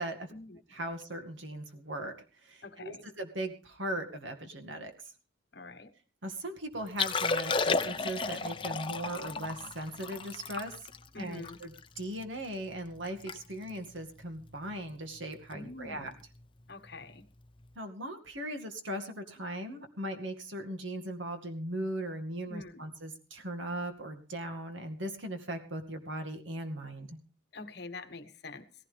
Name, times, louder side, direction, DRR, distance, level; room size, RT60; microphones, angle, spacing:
voice 1, 0.0-0.3 0.7-2.1 2.4-4.9 6.2-10.9 11.2-16.1 17.8-27.2, right 1 dB, 80° right, 6 dB, 2.1 m, -38 dB
voice 2, 2.6-3.1 5.5-5.9 11.1-11.6 15.5-16.1 16.7-17.3 22.5-22.8 27.5-28.7, left 3 dB, 55° left, 9 dB, 1.3 m, -45 dB
Liquid, 6.9-12.2 12.7-12.8 13.1-13.4 13.6-13.9 14.5-14.7 16.2-16.3, left 4 dB, 25° left, 0.7 m, -33 dB
17.0 x 15.5 x 3.5 m, 0.36 s
head